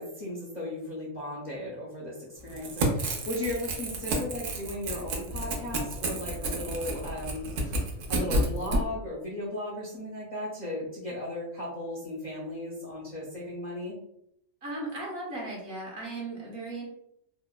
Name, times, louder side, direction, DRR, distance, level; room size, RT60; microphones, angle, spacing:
voice 1, 0.0-13.9, left 1 dB, 50° left, -7 dB, 0.6 m, -36 dB
Crackle / Tearing, 2.4-8.8, right 1 dB, 80° right, 0.9 m, -30 dB
voice 2, 14.6-16.8, right 2 dB, 55° right, -4 dB, 1.0 m, -36 dB
2.8 x 2.1 x 2.2 m, 0.76 s
omnidirectional pair, 1.3 m